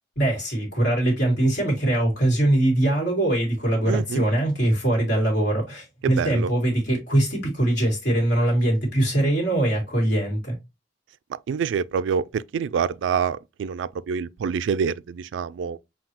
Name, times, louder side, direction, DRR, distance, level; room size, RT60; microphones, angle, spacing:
voice 1, 0.1-10.6, right 1 dB, 65° left, 1.8 m, -22 dB
voice 2, 3.9-4.3 6.0-6.5 11.3-15.8, right 6 dB, 85° right, 0.3 m, -26 dB
5.7 x 2.4 x 2.9 m
head